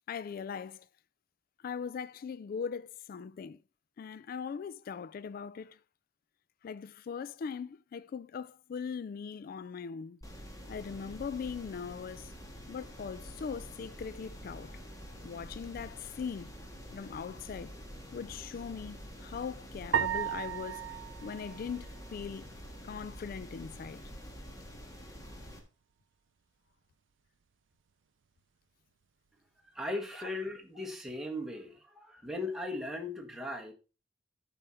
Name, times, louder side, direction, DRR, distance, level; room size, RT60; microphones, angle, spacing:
voice 1, 0.1-0.9 1.6-3.6 4.0-5.8 6.6-10.2 10.7-12.3 12.7-14.8 15.2-16.5 16.9-17.8 18.1-22.5 22.8-24.0, left 6 dB, 50° left, 0.3 m, -40 dB
sound 1, 10.2-25.6, equal, 20° left, 1.5 m, -47 dB
sound 2, 19.9-22.4, right 9 dB, 85° right, 0.4 m, -35 dB
voice 2, 29.6-33.7, left 1 dB, ahead, 1.4 m, -38 dB
11.0 x 4.9 x 4.3 m
head